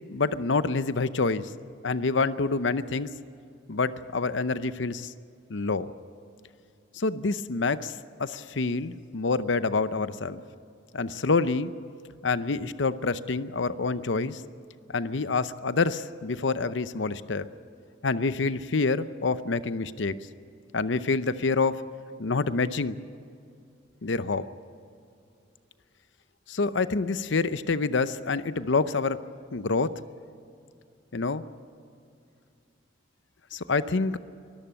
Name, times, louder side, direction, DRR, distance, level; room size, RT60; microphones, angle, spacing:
voice 1, 0.1-1.5 1.8-3.1 3.7-5.1 5.5-5.9 6.9-7.9 8.2-10.4 10.9-11.7 12.2-14.4 14.9-17.5 18.0-20.2 20.7-21.8 22.2-23.0 24.0-24.5 26.5-29.2 29.5-29.9 31.1-31.4 33.5-34.2, left 4 dB, 75° left, 14 dB, 0.7 m, -27 dB
23.0 x 14.0 x 8.9 m, 2.4 s
head